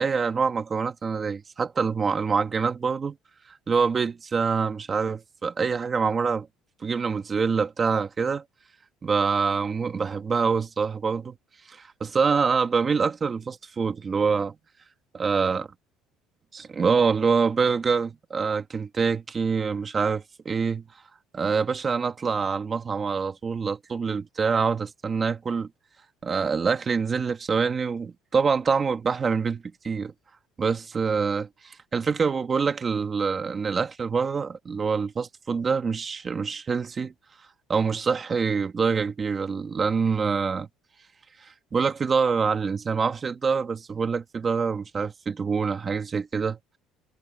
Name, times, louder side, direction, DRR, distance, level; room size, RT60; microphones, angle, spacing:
voice 1, 0.0-3.2 3.7-6.5 6.8-8.4 9.0-11.4 11.7-14.6 15.2-15.6 16.5-20.8 21.3-25.7 26.2-30.1 30.6-37.1 37.7-40.7 41.7-46.6, right 5 dB, 20° right, 1.9 m, -25 dB
cardioid pair, 165°, 0 cm